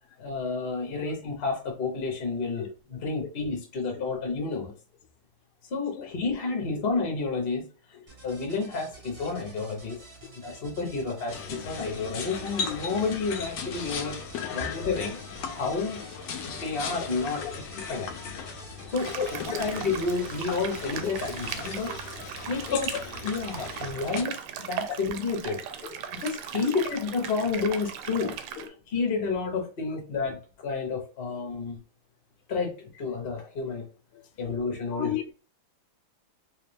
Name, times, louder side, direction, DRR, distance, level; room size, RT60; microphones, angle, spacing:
voice 1, 0.2-2.6 3.0-4.7 5.7-7.7 8.2-10.0 10.4-14.2 14.5-15.2 15.5-16.0 16.4-17.4 17.7-18.1 18.9-19.1 19.5-21.9 22.3-22.9 23.2-24.4 24.7-25.6 26.2-28.3 28.9-31.8 32.5-33.8 34.4-35.1, left 4 dB, 40° left, 1.0 m, -30 dB
voice 2, 5.9-6.3 7.9-8.1 9.2-9.3 14.8-14.9 17.4-18.0 18.3-18.5 19.2-19.8 22.6-22.8 25.8-26.0 26.6-26.7 28.6-28.7 29.9-30.0 34.1-34.2 34.9-35.3, left 8 dB, 90° left, 1.6 m, -36 dB
sound 1, 8.1-21.8, right 2 dB, 30° right, 1.0 m, -50 dB
sound 2, 11.3-24.2, left 5 dB, 70° left, 1.2 m, -37 dB
sound 3, 18.9-28.7, right 9 dB, 90° right, 1.5 m, -38 dB
3.3 x 3.0 x 3.4 m
omnidirectional pair, 2.4 m